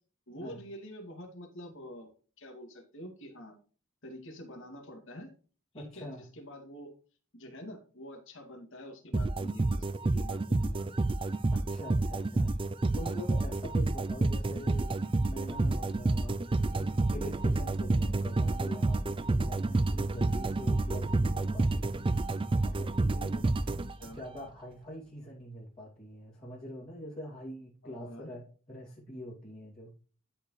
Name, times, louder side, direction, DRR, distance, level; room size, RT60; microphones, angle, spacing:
voice 1, 0.3-2.1 2.4-3.6 4.0-5.3 5.7-6.9 7.3-10.9 24.0-24.2 27.8-28.3, equal, 60° left, 2 dB, 2.4 m, -46 dB
voice 2, 5.7-6.2 11.5-12.5 12.9-16.4 16.7-21.9 22.6-23.5 24.0-29.9, equal, 30° left, -8 dB, 2.7 m, -44 dB
sound 1, 9.1-24.4, right 2 dB, 25° right, 0.4 m, -29 dB
12.0 x 4.7 x 3.2 m, 0.39 s
head